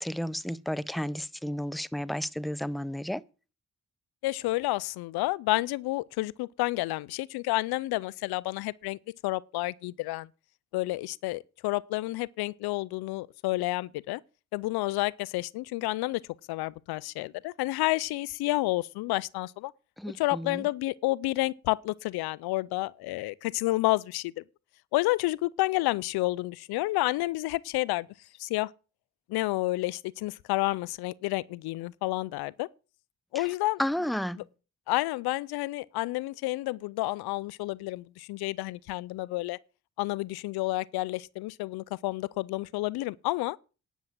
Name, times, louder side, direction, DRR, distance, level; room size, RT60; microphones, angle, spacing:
voice 1, 0.0-3.2 20.0-20.6 33.3-33.4 33.8-34.4, equal, ahead, 0.7 m, -32 dB
voice 2, 4.2-9.0 9.2-10.3 10.7-14.2 14.5-16.2 16.5-19.7 20.2-24.3 24.9-28.1 28.4-28.7 29.3-32.7 33.3-33.8 34.4-34.5 34.9-39.6 40.0-43.6, left 19 dB, 85° left, 0.5 m, -30 dB
10.5 x 7.1 x 7.6 m
supercardioid pair, 40°, 37 cm